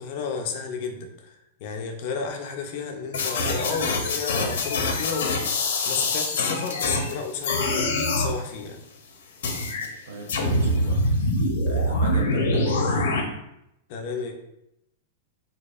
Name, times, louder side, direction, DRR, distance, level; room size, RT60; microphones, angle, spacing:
voice 1, 0.0-5.4 5.9-8.8 13.9-14.3, left 5 dB, 35° left, 3 dB, 0.4 m, -32 dB
sound 1, 3.1-7.1 7.4-8.3 9.4-9.9 10.3-13.2, left 2 dB, 85° left, 0.6 m, -24 dB
voice 2, 10.0-11.1 11.7-13.3, right 2 dB, 70° right, 2 dB, 0.7 m, -36 dB
4.2 x 2.7 x 2.4 m, 0.83 s
supercardioid pair, 180°, 0 cm